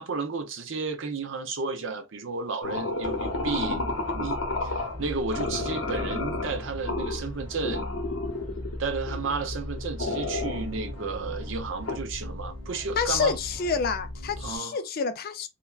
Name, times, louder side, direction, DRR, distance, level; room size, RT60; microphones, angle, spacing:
voice 1, 0.0-7.8 8.8-13.4 14.4-14.8, right 4 dB, 65° right, 0.5 m, -33 dB
sound 1, 2.6-5.0 5.3-7.3 7.6-8.8 9.1-12.0, left 2 dB, 80° left, 0.7 m, -32 dB
sound 2, 3.0-14.6, left 1 dB, 20° right, 1.9 m, -38 dB
voice 2, 13.0-15.5, left 5 dB, 45° left, 0.4 m, -28 dB
3.2 x 2.2 x 2.3 m
head